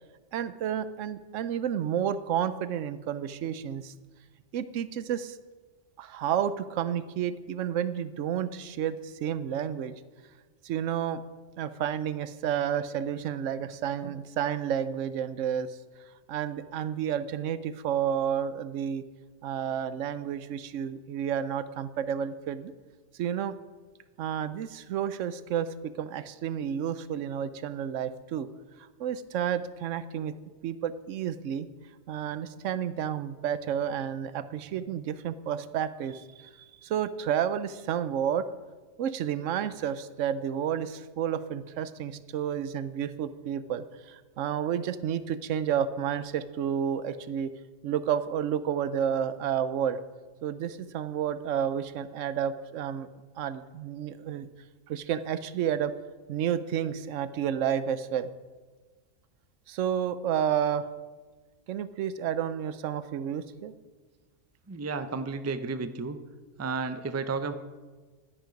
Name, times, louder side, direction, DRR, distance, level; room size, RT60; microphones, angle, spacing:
voice 1, 0.3-3.9 4.5-5.4 6.0-9.9 10.6-11.2 11.6-15.8 16.3-19.0 19.4-22.7 23.2-23.5 24.2-28.5 29.0-30.3 30.6-31.7 32.1-36.5 36.8-38.5 39.0-47.5 47.8-50.0 50.4-53.1 53.4-54.5 54.9-55.9 56.3-58.3 59.7-60.9 61.7-63.7, right 9 dB, 90° right, 14 dB, 1.0 m, -31 dB
voice 2, 64.7-66.2 66.6-67.5, right 4 dB, 25° right, 10 dB, 0.3 m, -32 dB
11.0 x 10.5 x 5.2 m, 1.4 s
omnidirectional pair, 1.3 m